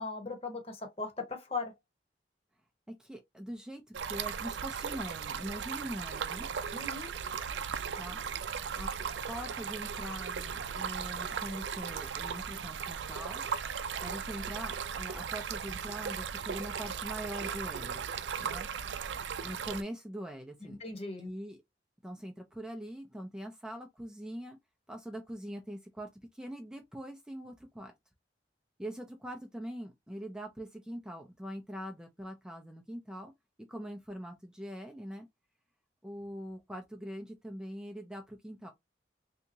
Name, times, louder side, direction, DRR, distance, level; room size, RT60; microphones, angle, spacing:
voice 1, 0.0-1.7 6.7-7.1 20.6-21.3, left 3 dB, 35° left, 1.1 m, -38 dB
voice 2, 3.0-6.5 8.0-8.2 8.7-8.9 9.3-13.4 14.0-18.0 18.4-18.7 19.4-20.8 21.2-21.6 22.0-24.6 24.9-27.9 28.8-33.3 33.7-35.3 36.0-38.7, equal, 5° right, 0.4 m, -43 dB
Stream, 3.9-19.8, right 7 dB, 90° right, 0.4 m, -37 dB
3.4 x 2.8 x 2.7 m
head